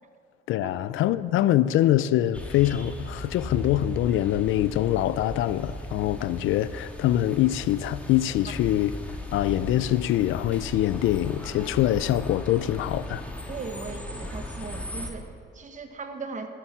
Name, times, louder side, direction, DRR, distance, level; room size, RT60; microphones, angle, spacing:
voice 1, 0.5-9.0 9.3-13.2, left 13 dB, 85° left, 0.5 m, -24 dB
sound 1, 2.3-15.1, left 1 dB, 5° left, 1.7 m, -37 dB
voice 2, 13.5-16.5, right 4 dB, 40° right, 1.3 m, -38 dB
11.5 x 8.1 x 7.0 m
cardioid pair, 90°, 20 cm